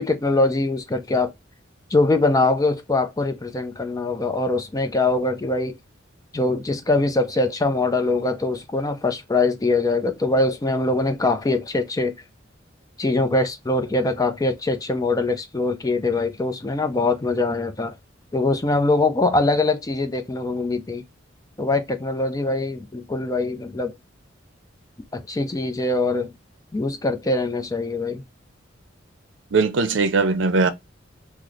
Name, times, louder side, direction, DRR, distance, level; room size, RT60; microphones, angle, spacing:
voice 1, 0.0-1.3 1.9-5.7 6.3-12.1 13.0-18.0 18.3-21.0 21.6-23.9 25.1-26.3 26.7-28.2, left 2 dB, 20° left, 0.4 m, -22 dB
voice 2, 29.5-30.7, right 4 dB, 70° right, 0.5 m, -19 dB
3.1 x 2.1 x 3.8 m
head